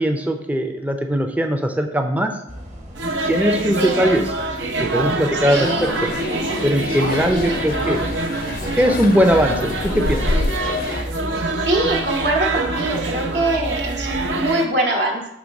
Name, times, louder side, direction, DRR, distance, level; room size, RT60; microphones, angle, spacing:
voice 1, 0.0-2.3 3.3-4.2 4.8-6.1 6.6-8.1 8.8-10.2, equal, 10° right, 5 dB, 0.4 m, -20 dB
sound 1, 2.5-14.5, equal, 40° right, 1.2 m, -34 dB
sound 2, 2.9-14.7, right 2 dB, 80° right, 0.7 m, -26 dB
voice 2, 5.4-6.6 7.3-7.6 11.3-15.3, right 2 dB, 60° right, -1 dB, 1.0 m, -23 dB
sound 3, 5.5-11.0, left 2 dB, 50° left, 0.4 m, -28 dB
6.0 x 3.2 x 5.2 m, 0.81 s
head